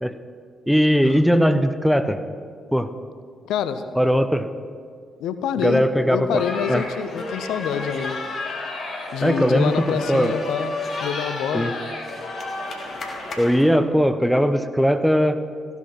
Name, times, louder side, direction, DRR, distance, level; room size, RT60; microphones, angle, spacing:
voice 1, 0.7-2.2 2.7-2.9 4.0-4.5 5.6-6.4 6.7-6.8 9.2-10.3 11.5-11.7 13.4-15.4, equal, ahead, 10 dB, 0.8 m, -19 dB
voice 2, 3.5-4.0 5.2-5.8 6.1-8.2 9.1-11.7, left 8 dB, 70° left, 11 dB, 0.5 m, -27 dB
sound 1, 6.4-13.7, left 2 dB, 55° left, 1.9 m, -31 dB
15.0 x 7.2 x 5.8 m, 2.1 s
hypercardioid pair, 40°, 0 cm